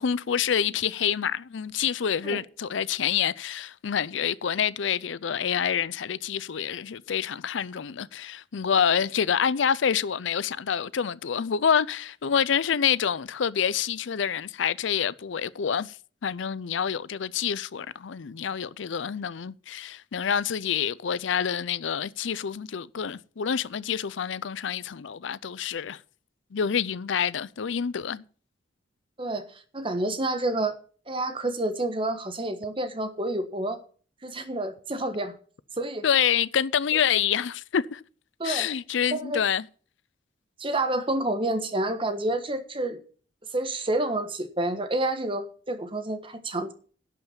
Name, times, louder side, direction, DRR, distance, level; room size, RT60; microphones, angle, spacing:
voice 1, 0.0-16.0 16.2-26.0 26.5-28.2 36.0-38.0 38.4-39.6, left 8 dB, 75° left, 0.5 m, -27 dB
voice 2, 29.2-30.8 31.1-33.8 34.2-35.3 35.8-36.0 38.4-38.7 39.1-39.4 40.6-43.0 43.5-46.7, right 2 dB, 25° right, 1.3 m, -29 dB
11.5 x 5.6 x 8.6 m
head